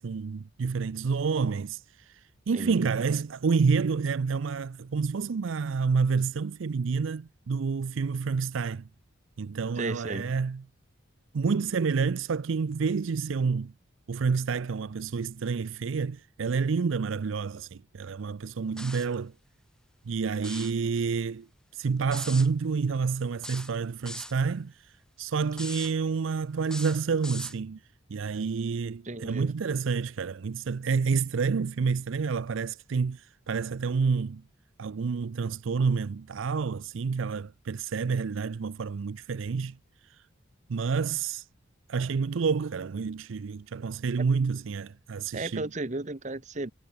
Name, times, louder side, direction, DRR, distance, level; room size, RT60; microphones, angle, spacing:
voice 1, 0.0-8.9 9.4-10.6 11.3-13.7 14.1-19.3 20.1-21.5 21.7-27.8 28.1-34.4 34.8-39.8 40.1-40.2 40.7-41.5 41.9-45.6, right 5 dB, 70° right, 0.5 m, -29 dB
voice 2, 2.5-2.9 9.8-10.3 29.0-29.5 44.2-44.3 45.3-46.7, right 2 dB, 35° right, 1.0 m, -34 dB
sound 1, 18.8-19.1 20.3-20.8 22.1-22.5 23.4-24.4 25.5-25.9 26.6-27.6, left 1 dB, 5° left, 0.6 m, -40 dB
head